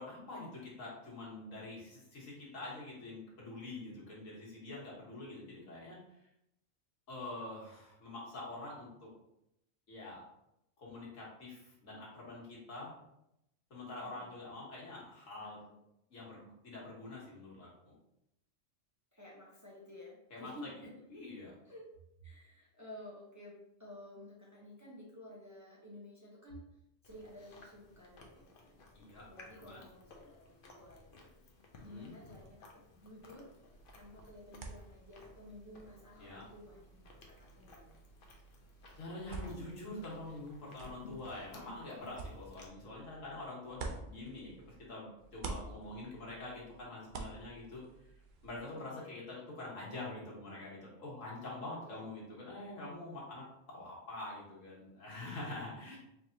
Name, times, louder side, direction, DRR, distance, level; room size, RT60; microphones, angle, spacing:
voice 1, 0.0-6.3 7.1-9.1 9.9-10.2 10.8-13.0 13.7-15.6 16.1-17.9 20.3-20.5 21.1-21.6 28.9-29.8 31.8-32.1 36.2-36.4 39.0-48.1 48.4-56.0, left 2 dB, 85° left, -5 dB, 1.9 m, -46 dB
voice 2, 14.0-14.4 15.4-15.8 19.1-20.9 21.6-21.8 22.2-26.7 27.0-28.8 29.2-31.3 31.8-33.5 33.9-37.9 48.7-49.2 51.8-52.2, left 1 dB, 15° right, -5 dB, 0.7 m, -53 dB
Chewing mastication, 27.0-42.7, left 3 dB, 50° left, 0.8 m, -58 dB
sound 1, 33.7-44.9 45.2-48.6, right 3 dB, 55° right, 0.6 m, -49 dB
4.7 x 3.4 x 2.7 m, 0.83 s
omnidirectional pair, 1.3 m